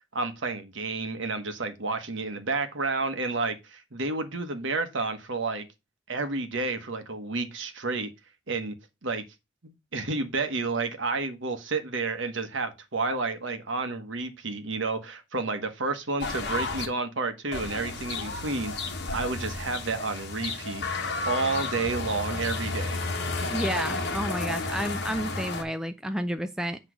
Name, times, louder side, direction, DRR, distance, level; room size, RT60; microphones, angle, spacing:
voice 1, 0.1-5.7 6.1-8.1 8.5-8.7 9.0-9.2 9.6-21.0 21.3-23.0, right 3 dB, 65° right, 1.1 m, -30 dB
sound 1, 16.2-16.9 17.5-25.6, left 3 dB, 50° left, 1.2 m, -32 dB
voice 2, 23.5-26.8, equal, 5° right, 0.3 m, -31 dB
8.1 x 3.2 x 6.1 m
head